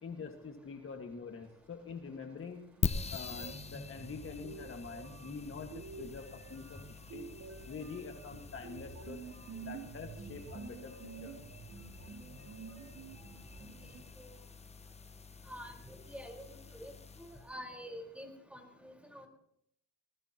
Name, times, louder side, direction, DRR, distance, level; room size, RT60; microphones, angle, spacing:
voice 1, 0.0-2.6 3.1-7.3 7.7-9.2 9.6-11.3, left 5 dB, 45° left, 4 dB, 1.9 m, -45 dB
sound 1, 2.4-2.5 2.8-14.0, right 5 dB, 70° right, 3.5 m, -49 dB
sound 2, 2.8-17.5, left 5 dB, 20° left, 0.7 m, -44 dB
voice 2, 15.5-16.9 17.2-19.3, equal, 5° right, 2 dB, 4.6 m, -47 dB
20.0 x 20.0 x 3.0 m, 0.75 s
cardioid pair, 90°, 30 cm